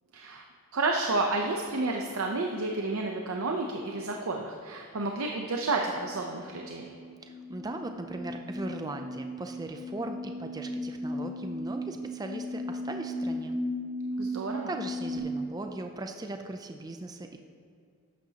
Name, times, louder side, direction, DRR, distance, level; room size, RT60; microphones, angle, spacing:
voice 1, 0.1-0.4 0.7-6.9 14.2-14.7, right 3 dB, 80° right, 1 dB, 0.7 m, -30 dB
sound 1, 6.0-15.2, left 1 dB, 85° left, 2.5 m, -36 dB
voice 2, 7.2-13.6 14.7-17.4, right 2 dB, 20° right, 5 dB, 0.3 m, -38 dB
12.0 x 8.5 x 2.8 m, 2.3 s
head